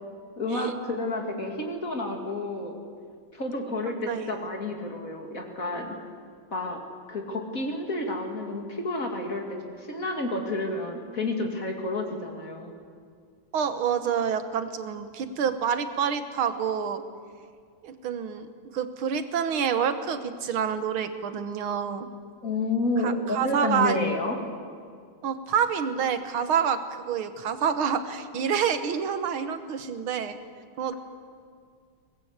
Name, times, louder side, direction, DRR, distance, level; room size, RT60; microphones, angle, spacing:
voice 1, 0.4-2.8 3.3-5.9 6.5-6.8 7.1-12.7 22.4-24.3, left 2 dB, 40° left, 2 dB, 2.9 m, -30 dB
voice 2, 4.1-4.5 13.5-17.0 17.8-18.5 18.7-22.1 23.0-24.0 25.2-30.4 30.8-30.9, right 7 dB, 75° right, 9 dB, 2.0 m, -27 dB
23.0 x 20.0 x 8.1 m, 2.1 s
omnidirectional pair, 2.3 m